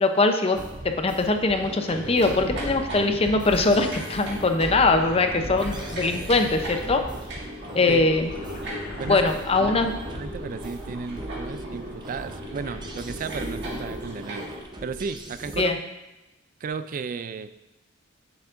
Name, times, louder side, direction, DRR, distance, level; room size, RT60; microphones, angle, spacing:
voice 1, 0.0-0.6 0.8-7.0 7.7-8.3 9.1-9.9 15.6-15.8, left 3 dB, 30° left, 6 dB, 0.6 m, -22 dB
sound 1, 0.6-15.6, right 1 dB, 20° right, 0.7 m, -39 dB
sound 2, 1.5-14.6, equal, 60° right, 1.8 m, -38 dB
sound 3, 5.5-11.3 11.7-14.2 16.7-16.8, left 1 dB, 85° left, 2.5 m, -41 dB
voice 2, 9.0-9.3 9.6-9.8 10.1-14.5 14.8-15.8 16.6-17.5, right 5 dB, 40° right, 13 dB, 0.3 m, -34 dB
9.7 x 7.0 x 2.5 m, 1.0 s
head